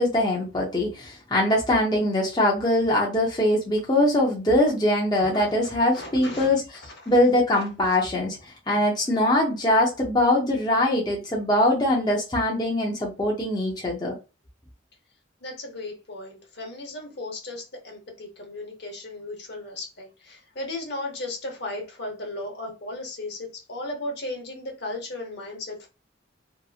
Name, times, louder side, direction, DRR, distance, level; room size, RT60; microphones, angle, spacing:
voice 1, 0.0-6.6 7.1-14.2, left 1 dB, 20° left, 0.5 m, -22 dB
voice 2, 5.2-5.5 5.9-6.5 7.0-7.1 15.4-25.9, left 2 dB, 55° left, 0.8 m, -36 dB
2.8 x 2.5 x 2.4 m
head